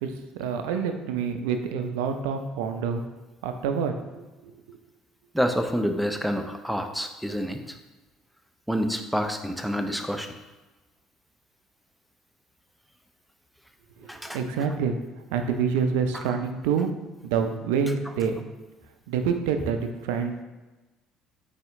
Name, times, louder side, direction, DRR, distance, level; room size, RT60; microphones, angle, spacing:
voice 1, 0.0-3.0 3.4-3.9 4.4-4.5 14.0-14.9 15.3-16.9 17.2-18.4 19.1-20.4, right 6 dB, 70° right, 6 dB, 0.4 m, -27 dB
voice 2, 5.3-7.7 8.7-10.3 14.1-14.4, equal, ahead, 5 dB, 0.5 m, -28 dB
4.2 x 3.4 x 3.7 m, 1.1 s
figure-of-eight pair, 55°, 0 cm